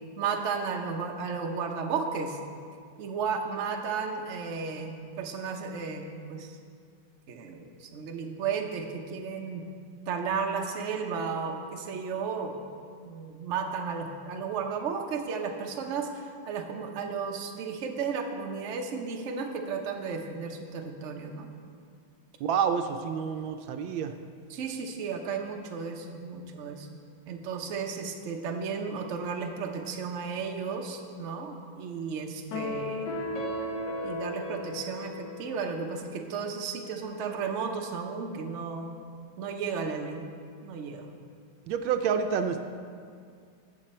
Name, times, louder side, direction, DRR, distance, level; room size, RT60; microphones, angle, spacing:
voice 1, 0.2-2.4 3.0-6.6 7.3-9.6 10.1-12.6 13.1-21.5 24.5-33.2 34.0-39.0 39.4-40.3 40.6-41.1, right 5 dB, 50° right, 3 dB, 0.9 m, -34 dB
voice 2, 22.4-24.1 41.7-42.6, right 7 dB, 80° right, 7 dB, 1.3 m, -28 dB
sound 1, 32.5-36.0, left 1 dB, 60° left, 1.9 m, -35 dB
14.0 x 7.3 x 4.3 m, 2.2 s
omnidirectional pair, 2.2 m